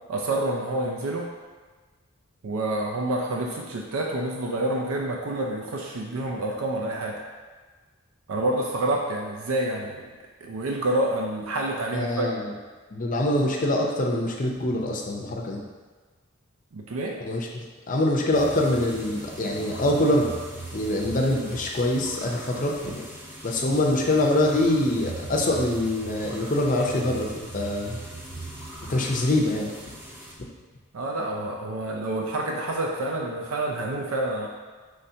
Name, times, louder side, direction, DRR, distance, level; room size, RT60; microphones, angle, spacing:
voice 1, 0.1-1.3 2.4-7.2 8.3-10.1 10.4-12.3 16.7-17.2 30.9-34.5, right 1 dB, 75° right, 0 dB, 0.5 m, -28 dB
voice 2, 11.9-12.5 12.9-15.6 17.3-20.3 20.7-23.0 23.4-28.0 28.9-29.7, left 1 dB, 35° left, -1 dB, 0.5 m, -24 dB
sound 1, 18.3-30.3, right 1 dB, 10° right, 0.5 m, -39 dB
5.6 x 3.2 x 2.7 m, 1.4 s
head